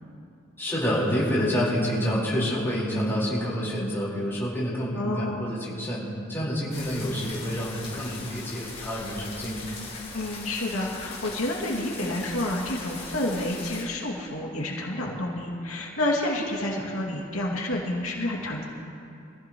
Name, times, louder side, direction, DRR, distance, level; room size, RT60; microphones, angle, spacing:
voice 1, 0.6-9.6, equal, 10° left, -7 dB, 4.3 m, -28 dB
voice 2, 4.9-5.5 10.1-18.6, left 1 dB, 85° left, -2 dB, 2.4 m, -29 dB
sound 1, 6.7-13.9, left 3 dB, 30° left, 4.4 m, -40 dB
25.5 x 15.5 x 3.1 m, 2.5 s
head